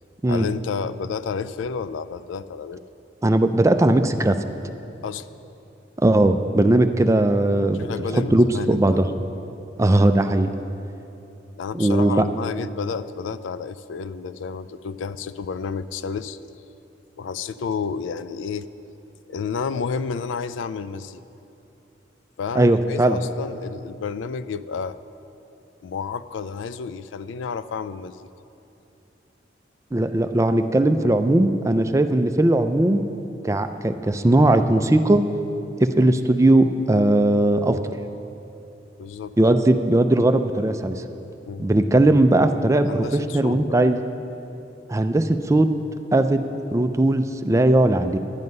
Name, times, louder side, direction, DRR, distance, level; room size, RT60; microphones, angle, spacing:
voice 1, 0.3-2.8 5.0-5.3 7.8-9.2 11.6-16.4 17.2-18.7 19.3-21.2 22.4-25.0 25.8-28.3 39.0-39.3 41.4-41.7 42.9-43.8, left 5 dB, 85° left, 14 dB, 0.4 m, -31 dB
voice 2, 3.2-4.4 6.0-7.8 8.3-9.1 9.8-10.5 11.7-12.3 22.6-23.2 29.9-33.0 33.4-35.2 35.8-37.8 39.4-40.9 41.6-44.0 44.9-45.7 46.1-48.2, right 1 dB, 15° right, 8 dB, 0.4 m, -18 dB
10.5 x 9.5 x 5.4 m, 2.9 s
head